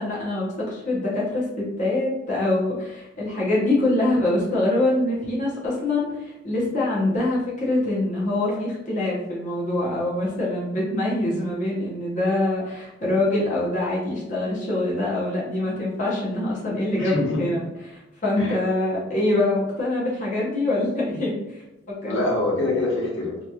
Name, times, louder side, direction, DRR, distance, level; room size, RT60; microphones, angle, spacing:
voice 1, 0.0-21.6 22.0-22.2, left 2 dB, 40° left, -6 dB, 0.8 m, -24 dB
voice 2, 17.0-17.4 18.4-18.6 22.0-23.4, left 2 dB, 90° left, -5 dB, 1.1 m, -25 dB
2.9 x 2.8 x 2.3 m, 0.93 s
head